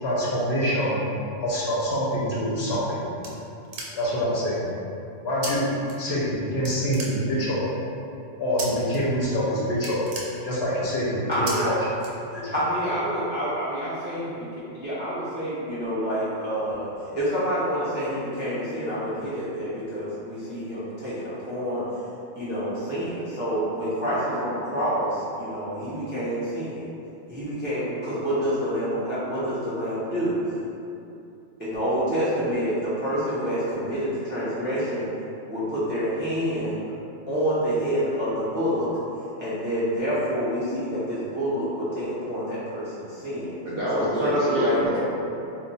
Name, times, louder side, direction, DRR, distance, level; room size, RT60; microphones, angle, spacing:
voice 1, 0.0-1.1 1.4-3.0 3.9-4.7 5.2-5.7 6.0-7.7 8.4-10.0 10.4-11.8 12.3-12.6, equal, 60° left, -7 dB, 0.8 m, -25 dB
sound 1, 2.6-4.3 5.4-5.5 5.8-6.4 6.6-7.6 8.6-9.0 9.3-9.5 9.7-10.9 11.5-11.6 12.0-12.6, right 3 dB, 90° right, 1.0 m, -36 dB
voice 2, 11.3-11.7 12.5-21.8 22.4-26.8 27.3-30.4 31.6-35.1 35.5-36.8 37.3-38.9 39.4-43.6 43.9-45.0, equal, 15° right, -12 dB, 0.3 m, -27 dB
voice 3, 43.6-45.0, equal, 60° right, -8 dB, 0.7 m, -26 dB
2.2 x 2.2 x 3.9 m, 2.7 s
omnidirectional pair, 1.3 m